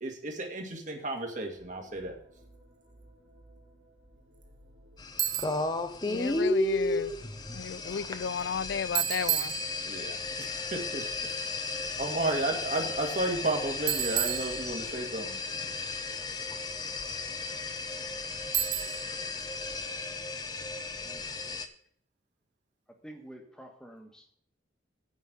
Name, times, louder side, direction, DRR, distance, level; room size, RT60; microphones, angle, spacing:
voice 1, 0.0-2.2 9.9-11.1 12.0-15.4, right 2 dB, 40° right, 1.9 m, -33 dB
sound 1, 1.5-19.1, equal, 90° right, 3.3 m, -58 dB
sound 2, 5.0-21.7, left 2 dB, 20° left, 0.6 m, -34 dB
Bicycle, 5.2-5.7 9.0-10.2 13.9-15.1 18.5-19.2, right 13 dB, 60° right, 0.7 m, -31 dB
voice 2, 6.1-7.1 7.5-9.6, left 6 dB, 65° left, 0.3 m, -34 dB
voice 3, 22.9-24.3, right 1 dB, 5° left, 1.4 m, -49 dB
9.2 x 5.3 x 7.6 m
head